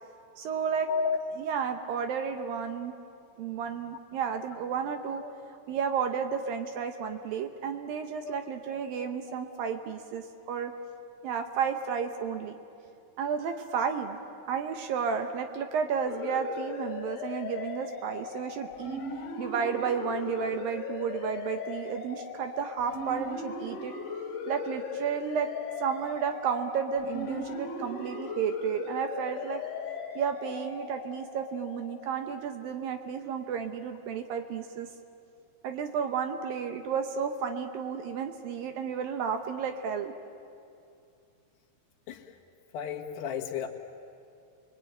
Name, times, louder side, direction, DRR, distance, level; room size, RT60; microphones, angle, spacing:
voice 1, 0.4-0.9 1.4-2.9 3.4-5.3 5.7-10.7 11.2-12.6 13.2-14.2 14.5-19.0 19.4-23.9 24.5-25.5 25.8-29.6 30.2-34.9 35.6-40.1, right 6 dB, 70° right, 6 dB, 2.4 m, -32 dB
voice 2, 0.9-1.2 5.2-5.3 8.2-8.4 9.3-9.4 42.1-42.2 42.7-43.7, left 7 dB, 80° left, 1 dB, 3.7 m, -32 dB
sound 1, 16.1-32.5, left 4 dB, 50° left, 3.8 m, -38 dB
29.5 x 22.0 x 9.0 m, 2.5 s
omnidirectional pair, 4.8 m